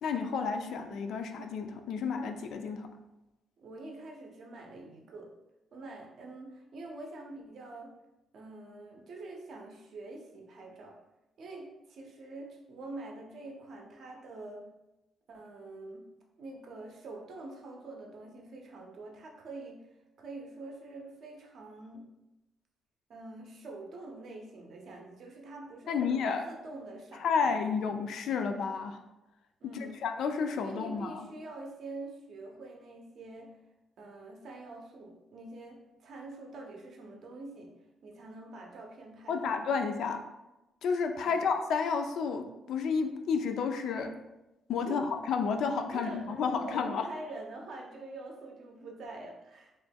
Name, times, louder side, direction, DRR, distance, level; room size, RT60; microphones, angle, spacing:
voice 1, 0.0-2.9 25.9-26.4 27.2-29.0 29.6-29.7 30.0-31.3 39.3-40.2 40.8-44.2 44.7-47.1, left 5 dB, 70° left, 5 dB, 0.3 m, -31 dB
voice 2, 3.6-5.3 5.7-7.9 8.3-11.0 11.4-14.7 15.3-16.0 16.4-19.8 20.2-22.0 23.1-27.5 29.6-30.0 30.6-33.6 34.0-37.7 38.0-39.6 41.2-41.5 44.8-45.0 45.9-49.7, right 2 dB, 55° right, 1 dB, 0.5 m, -45 dB
3.0 x 2.2 x 3.4 m, 0.98 s
cardioid pair, 145°, 0 cm